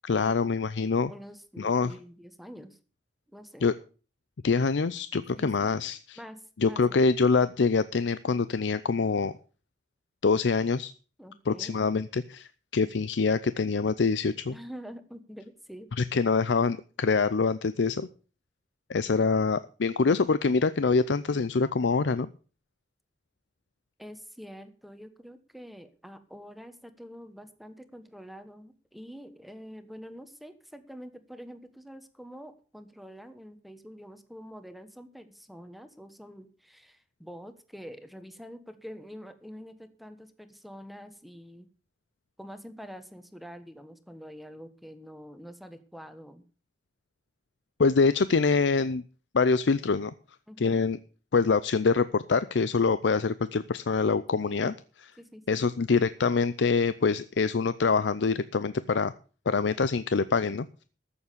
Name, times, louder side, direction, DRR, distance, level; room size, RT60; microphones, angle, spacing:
voice 1, 0.0-1.1 1.6-1.9 3.6-3.7 4.4-6.2 6.6-9.3 10.2-10.9 11.5-14.5 16.0-18.1 18.9-22.3 47.8-49.0 49.3-50.1 50.6-51.0 51.3-54.7 55.5-59.1 59.5-60.8, left 4 dB, 85° left, 15 dB, 0.5 m, -25 dB
voice 2, 1.1-2.8 3.3-3.7 5.4-5.9 6.2-7.1 11.2-11.8 14.5-15.9 24.0-41.7 42.4-46.4 50.5-50.9 54.5-54.7 55.2-55.8, equal, ahead, 10 dB, 1.1 m, -46 dB
14.0 x 7.2 x 6.7 m, 0.38 s
head